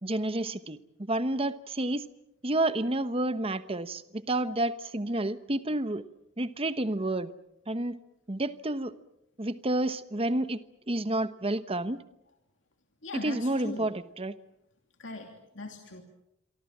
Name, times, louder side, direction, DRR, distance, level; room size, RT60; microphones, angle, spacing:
voice 1, 0.0-2.0 2.4-6.0 6.4-7.3 7.7-8.0 8.3-8.9 9.4-10.6 10.9-12.0 13.1-14.3, right 1 dB, 30° right, 13 dB, 1.1 m, -30 dB
voice 2, 13.0-13.9 15.0-16.0, left 2 dB, 65° left, 3 dB, 2.9 m, -40 dB
28.5 x 24.0 x 7.4 m, 0.82 s
head